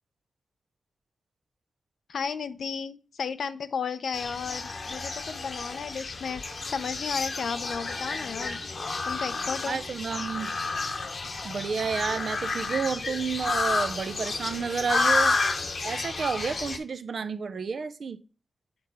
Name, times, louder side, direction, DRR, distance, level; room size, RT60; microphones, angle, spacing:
voice 1, 2.1-8.6 9.1-9.8, left 6 dB, 85° left, 0.4 m, -33 dB
sound 1, 4.1-16.8, left 3 dB, 65° left, 0.9 m, -31 dB
voice 2, 9.7-10.5 11.4-15.4 15.8-18.2, right 5 dB, 75° right, 0.5 m, -30 dB
6.9 x 3.9 x 3.9 m
cardioid pair, 55°, 0 cm